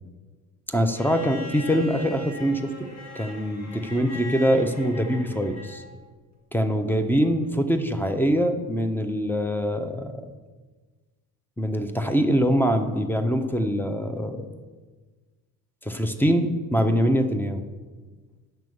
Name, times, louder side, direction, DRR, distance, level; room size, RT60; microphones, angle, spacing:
voice 1, 0.7-2.7 3.1-5.8 6.5-10.3 11.6-14.5 15.8-17.6, equal, 5° left, 7 dB, 1.1 m, -24 dB
Bowed string instrument, 0.9-6.0 7.4-7.5, left 2 dB, 35° left, 2.0 m, -40 dB
9.2 x 6.1 x 5.5 m, 1.4 s
hypercardioid pair, 50°, 45 cm